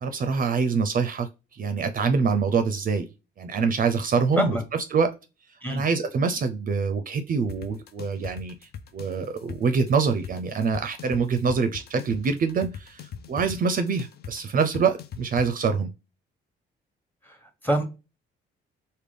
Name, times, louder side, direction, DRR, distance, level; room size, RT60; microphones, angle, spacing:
voice 1, 0.0-3.1 3.4-4.6 4.9-5.1 5.7-8.5 8.9-15.9, right 5 dB, 45° right, 0.5 m, -25 dB
sound 1, 7.5-15.5, left 7 dB, 55° left, 0.5 m, -40 dB
voice 2, 17.2-17.8, equal, 10° left, 1.0 m, -26 dB
3.5 x 2.2 x 3.3 m
cardioid pair, 90°, 20 cm